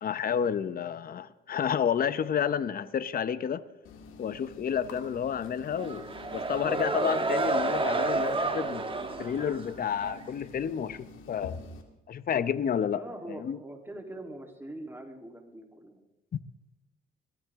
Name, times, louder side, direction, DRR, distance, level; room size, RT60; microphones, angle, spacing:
voice 1, 0.0-3.6 4.2-6.0 6.3-8.8 9.2-11.6 12.1-13.0 13.3-13.6 16.3-16.4, left 8 dB, 50° left, 15 dB, 0.9 m, -30 dB
sound 1, 3.9-11.8, left 4 dB, 90° left, 2.2 m, -48 dB
sound 2, 5.7-10.2, right 3 dB, 25° right, 1.7 m, -30 dB
voice 2, 12.9-16.0, right 1 dB, 10° right, 2 dB, 3.4 m, -43 dB
22.5 x 14.5 x 3.7 m, 0.96 s
cardioid pair, 90°, 20 cm